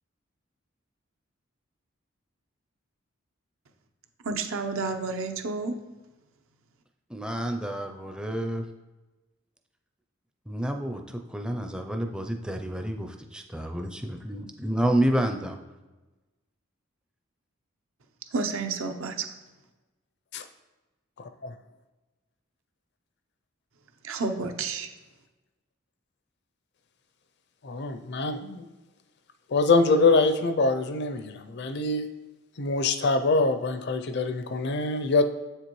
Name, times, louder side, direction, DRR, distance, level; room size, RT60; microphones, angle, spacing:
voice 1, 4.2-5.7 18.3-19.3 24.0-24.9, right 4 dB, 75° right, 5 dB, 0.7 m, -30 dB
voice 2, 7.1-8.6 10.5-15.6, right 1 dB, 5° right, 5 dB, 0.4 m, -29 dB
voice 3, 21.2-21.6 27.6-28.7 29.5-32.1 32.6-35.2, left 3 dB, 55° left, 9 dB, 0.5 m, -24 dB
7.8 x 6.7 x 3.1 m, 1.2 s
head